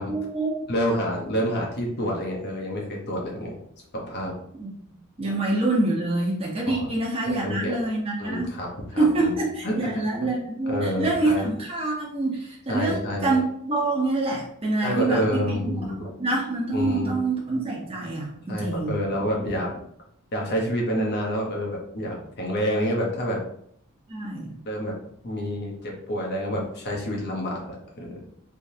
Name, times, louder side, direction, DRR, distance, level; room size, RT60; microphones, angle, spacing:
voice 1, 0.1-0.7 4.5-8.5 9.0-15.7 16.2-19.0 24.1-24.6, right 2 dB, 25° right, -3 dB, 0.8 m, -26 dB
voice 2, 0.7-3.6 3.9-4.3 5.2-5.4 6.7-6.9 7.3-7.8 8.2-9.3 9.6-9.9 10.7-11.4 12.7-13.3 14.8-16.1 16.7-17.2 18.5-19.7 20.3-23.4 24.6-25.0 25.2-28.2, equal, 50° left, -1 dB, 0.9 m, -28 dB
3.5 x 3.0 x 2.7 m, 0.69 s
head